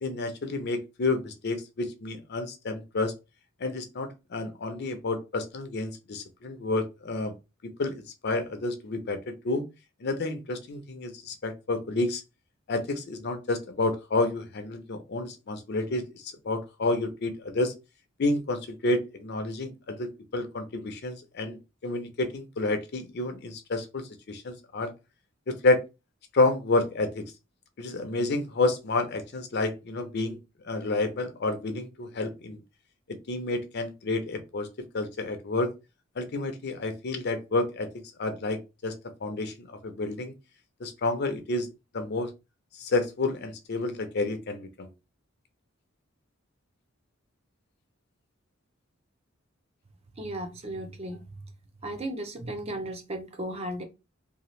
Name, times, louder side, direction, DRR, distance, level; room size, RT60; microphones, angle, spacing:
voice 1, 0.0-3.1 3.6-7.3 7.8-7.9 8.2-9.6 10.0-12.2 12.7-17.7 18.2-21.6 21.8-24.9 25.5-25.8 26.3-27.2 27.8-30.4 30.6-32.6 33.3-34.7 34.9-35.7 36.2-37.9 38.2-38.9 39.2-40.3 40.8-41.7 41.9-42.3 42.8-44.9, left 2 dB, 55° left, 0.5 m, -29 dB
voice 2, 50.2-51.2 51.8-53.8, right 1 dB, 30° right, 0.5 m, -35 dB
2.8 x 2.3 x 3.1 m
head